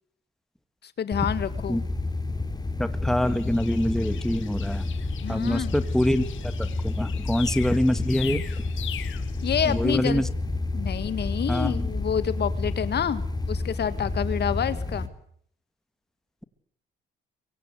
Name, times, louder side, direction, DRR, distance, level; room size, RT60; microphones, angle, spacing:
voice 1, 0.8-1.8 5.2-5.7 9.4-10.2 10.7-15.1, left 8 dB, 55° left, 14 dB, 1.8 m, -28 dB
sound 1, 1.1-15.1, left 2 dB, 20° left, 3.4 m, -30 dB
voice 2, 2.8-4.8 5.3-8.4 9.7-10.3 11.5-11.9, left 1 dB, ahead, 12 dB, 1.9 m, -25 dB
sound 2, 3.2-9.9, left 11 dB, 75° left, 2.1 m, -42 dB
24.0 x 23.5 x 8.3 m, 0.64 s
cardioid pair, 90°, 20 cm